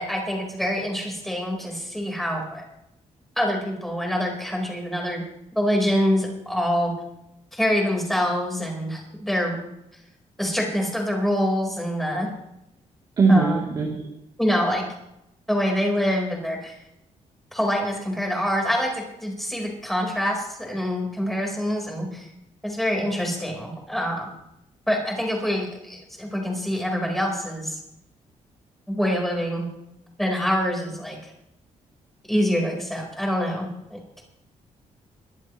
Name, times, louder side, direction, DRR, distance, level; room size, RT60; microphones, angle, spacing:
voice 1, 0.0-2.6 3.4-5.2 5.6-6.9 7.5-9.6 10.4-12.3 13.3-13.6 14.4-14.9 15.5-16.8 17.5-22.3 22.6-24.3 24.9-27.8 28.9-29.7 30.2-31.3 32.3-34.2, equal, ahead, 0 dB, 4.4 m, -25 dB
voice 2, 13.2-14.1, right 3 dB, 35° right, -3 dB, 3.2 m, -20 dB
22.5 x 15.0 x 3.2 m, 0.83 s
cardioid pair, 170°, 12 cm